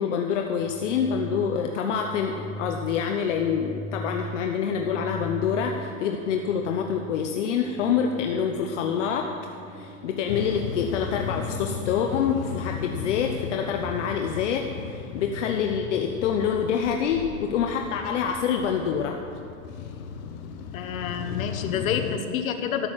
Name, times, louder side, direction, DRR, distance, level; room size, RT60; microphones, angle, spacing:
voice 1, 0.0-9.3 9.7-19.2, left 7 dB, 60° left, 3 dB, 1.0 m, -26 dB
sound 1, 0.6-16.2, equal, 5° right, 1.0 m, -42 dB
sound 2, 10.3-22.2, left 7 dB, 35° left, 0.8 m, -36 dB
voice 2, 20.7-22.9, left 8 dB, 80° left, 6 dB, 1.2 m, -28 dB
13.0 x 6.5 x 9.0 m, 2.8 s
supercardioid pair, 165°, 41 cm